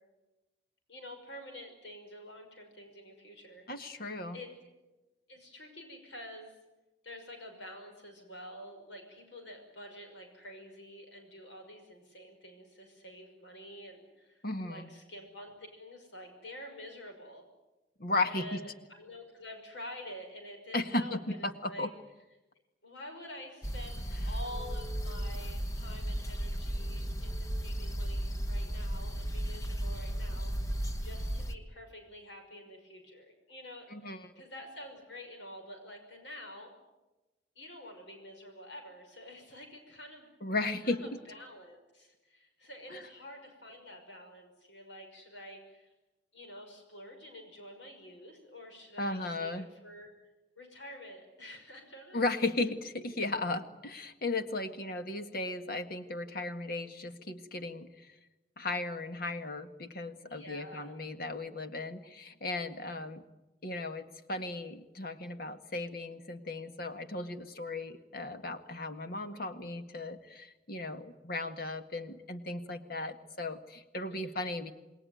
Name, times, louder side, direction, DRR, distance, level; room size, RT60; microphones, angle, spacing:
voice 1, 0.9-4.0 4.3-4.5 5.3-6.5 7.0-17.4 18.3-21.9 22.8-36.7 37.6-40.3 40.8-45.9 46.3-50.1 50.6-52.4 60.3-60.9 74.1-74.4, left 1 dB, 90° left, 4 dB, 5.8 m, -48 dB
voice 2, 3.7-4.4 14.4-14.9 18.0-18.6 20.7-21.9 33.9-34.3 40.4-41.0 42.9-43.1 49.0-49.7 52.1-58.1 58.6-63.2 63.6-74.7, left 2 dB, 55° left, 8 dB, 1.8 m, -36 dB
sound 1, 23.6-31.6, equal, 20° left, 1.3 m, -35 dB
28.0 x 21.0 x 9.4 m, 1.1 s
head